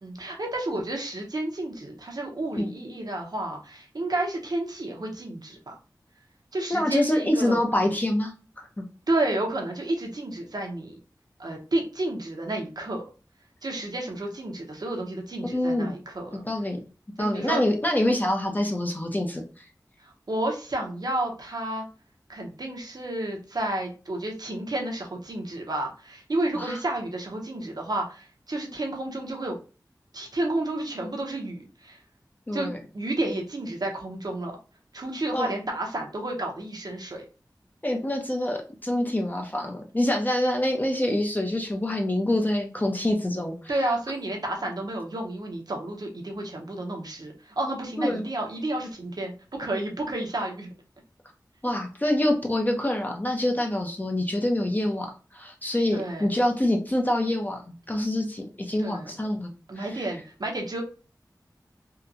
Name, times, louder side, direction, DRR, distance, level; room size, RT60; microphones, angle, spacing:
voice 1, 0.0-5.7 6.5-7.6 9.1-11.0 11.4-13.0 13.6-16.4 17.2-17.6 20.0-21.9 22.3-29.6 30.1-32.0 32.5-32.7 32.9-34.6 34.9-37.2 43.7-50.7 55.9-56.3 58.8-59.3 59.7-60.8, right 1 dB, 65° right, 1 dB, 0.7 m, -31 dB
voice 2, 6.7-8.8 15.4-15.9 16.4-16.8 17.2-19.4 26.6-26.8 32.5-32.8 35.3-35.5 37.8-43.8 48.0-48.2 51.6-59.5 59.8-60.0, left 1 dB, 25° left, 2 dB, 0.5 m, -26 dB
2.8 x 2.2 x 2.5 m, 0.35 s
wide cardioid pair, 50°, 7 cm